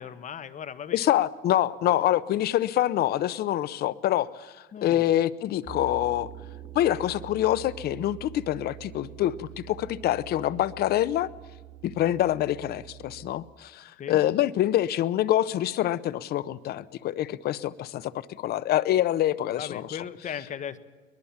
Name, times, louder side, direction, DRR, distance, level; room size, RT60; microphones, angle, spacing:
voice 1, 0.0-1.0 4.7-5.1 14.0-14.2 19.6-20.8, left 8 dB, 45° left, 13 dB, 1.4 m, -37 dB
voice 2, 0.9-4.5 4.8-6.3 6.7-11.3 11.8-18.1 18.4-20.0, left 13 dB, 70° left, 18 dB, 0.9 m, -26 dB
sound 1, 5.7-13.3, right 12 dB, 30° right, 1.1 m, -45 dB
22.5 x 20.5 x 7.3 m, 1.4 s
cardioid pair, 110°, 17 cm